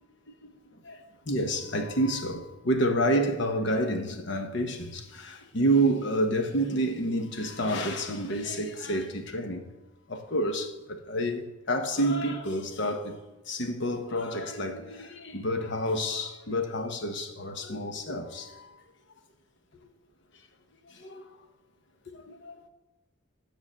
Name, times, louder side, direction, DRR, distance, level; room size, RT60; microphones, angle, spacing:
voice 1, 0.8-9.6 10.1-13.2 13.5-18.7 20.9-21.3 22.1-22.6, right 1 dB, 55° left, 1.0 m, -29 dB
9.1 x 5.0 x 7.3 m
head